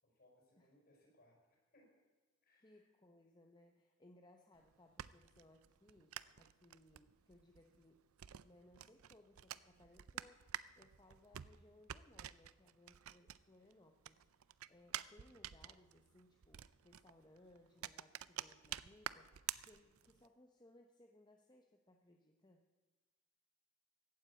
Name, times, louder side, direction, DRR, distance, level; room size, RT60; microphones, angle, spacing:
voice 1, 0.0-2.0 2.4-2.9, left 1 dB, 45° left, -1 dB, 5.4 m, -70 dB
voice 2, 2.6-8.1 8.4-22.7, left 1 dB, 20° left, 4 dB, 0.9 m, -66 dB
sound 1, 4.5-13.7 14.0-20.3, right 11 dB, 75° right, 0.5 m, -49 dB
15.5 x 9.4 x 8.5 m, 1.3 s
head